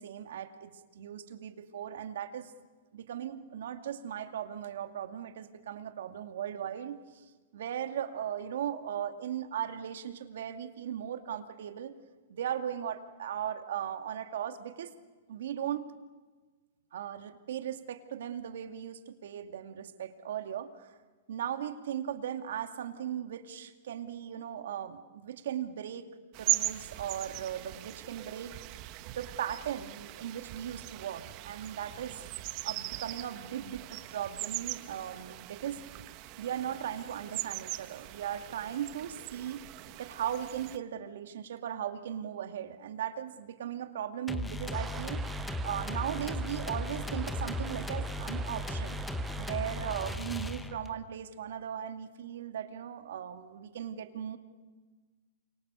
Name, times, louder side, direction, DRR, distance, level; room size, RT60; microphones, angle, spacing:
voice 1, 0.0-2.5 2.9-7.0 7.5-11.9 12.3-14.9 15.3-15.9 16.9-20.9 21.3-26.1 26.4-28.5 29.1-32.2 32.6-35.8 36.4-39.6 40.0-49.0 49.4-54.4, right 9 dB, 70° right, 7 dB, 2.4 m, -38 dB
sound 1, 26.3-40.8, right 19 dB, 40° right, 1.2 m, -39 dB
sound 2, 44.3-51.0, left 1 dB, 5° left, 1.5 m, -36 dB
sound 3, 44.7-50.2, right 8 dB, 20° right, 1.0 m, -45 dB
29.0 x 25.5 x 7.0 m, 1.4 s
hypercardioid pair, 130°, 0 cm